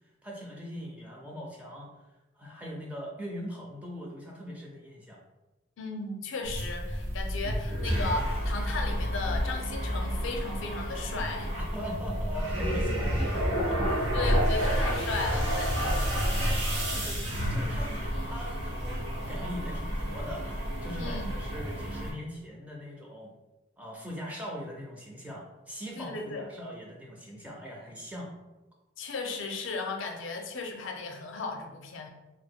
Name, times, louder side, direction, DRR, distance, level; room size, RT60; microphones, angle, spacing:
voice 1, 0.2-1.9 2.4-5.2 11.6-13.8 16.4-23.3 23.8-28.3, equal, 5° right, -2 dB, 0.4 m, -41 dB
voice 2, 5.8-11.5 14.1-16.1 21.0-21.3 26.0-26.4 29.0-32.1, left 3 dB, 75° left, 3 dB, 0.5 m, -35 dB
sound 1, 6.4-22.1, equal, 85° right, 1.0 m, -30 dB
2.8 x 2.1 x 3.6 m, 1.1 s
head